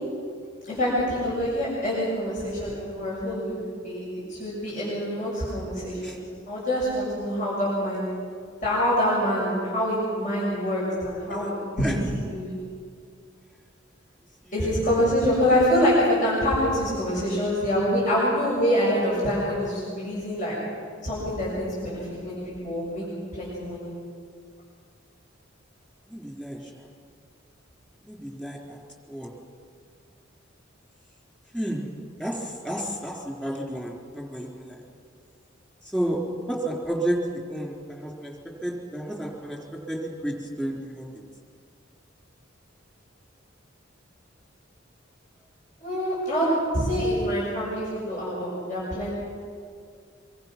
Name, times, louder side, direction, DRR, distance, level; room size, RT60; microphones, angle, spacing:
voice 1, 0.6-4.0 4.3-8.1 8.6-11.5 11.8-12.5 14.5-20.5 21.0-23.0 23.3-23.9 45.8-49.1, equal, 40° left, -7 dB, 7.2 m, -25 dB
voice 2, 14.4-14.8 26.1-26.9 28.0-28.8 29.1-29.4 31.5-31.9 32.2-34.8 35.8-36.2 36.5-38.3 38.6-41.1, right 1 dB, 5° left, -1 dB, 3.9 m, -31 dB
25.0 x 24.0 x 6.1 m, 2.1 s
head